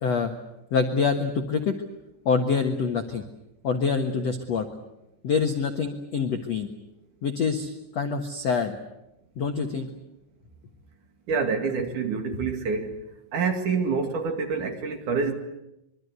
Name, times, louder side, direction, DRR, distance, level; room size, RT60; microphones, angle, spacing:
voice 1, 0.0-0.3 0.7-1.8 2.3-3.2 3.6-4.7 5.2-6.7 7.2-8.8 9.4-9.9, left 5 dB, 60° left, 5 dB, 1.7 m, -25 dB
voice 2, 11.3-13.0 13.3-15.3, right 5 dB, 50° right, 5 dB, 3.2 m, -27 dB
25.5 x 23.5 x 8.2 m, 0.88 s
omnidirectional pair, 5.2 m